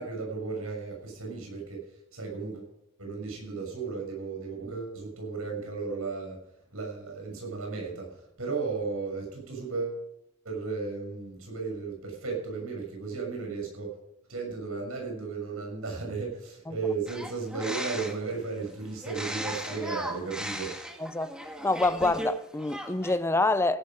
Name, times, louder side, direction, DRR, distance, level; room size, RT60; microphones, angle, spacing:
voice 1, 0.0-2.7 3.0-6.4 6.7-10.0 10.4-13.9 14.3-20.7, right 4 dB, 85° right, 6.8 m, -35 dB
sound 1, 17.1-18.3 19.0-22.3 22.6-23.2, right 1 dB, 5° right, 1.8 m, -37 dB
voice 2, 21.0-21.4 21.6-23.8, left 2 dB, 10° left, 0.5 m, -26 dB
16.5 x 11.0 x 5.2 m
head